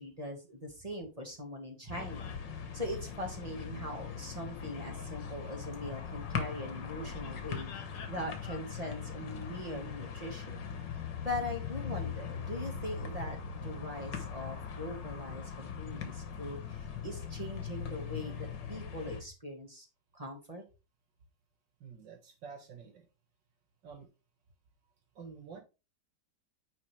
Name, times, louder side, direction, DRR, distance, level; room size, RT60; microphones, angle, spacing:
voice 1, 0.0-2.3 2.7-10.7 11.2-13.4 13.6-18.4 18.7-19.9 20.1-20.6, left 1 dB, 20° right, 1 dB, 1.7 m, -41 dB
sound 1, 1.9-19.2, left 7 dB, 90° left, 1.9 m, -40 dB
voice 2, 21.8-23.1 23.8-24.1 25.2-25.6, right 6 dB, 85° right, 4 dB, 2.4 m, -48 dB
9.5 x 4.2 x 3.3 m, 0.29 s
omnidirectional pair, 1.9 m